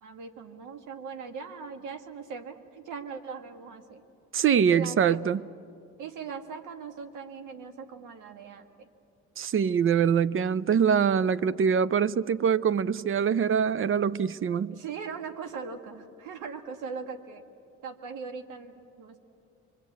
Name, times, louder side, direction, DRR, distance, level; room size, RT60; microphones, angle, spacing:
voice 1, 0.0-4.0 4.6-5.2 6.0-8.9 14.7-17.4 17.8-19.2, right 5 dB, 90° right, 1.7 m, -40 dB
voice 2, 4.3-5.4 9.4-14.8, right 7 dB, 45° right, 0.5 m, -24 dB
25.0 x 23.5 x 8.5 m
cardioid pair, 90°, 30 cm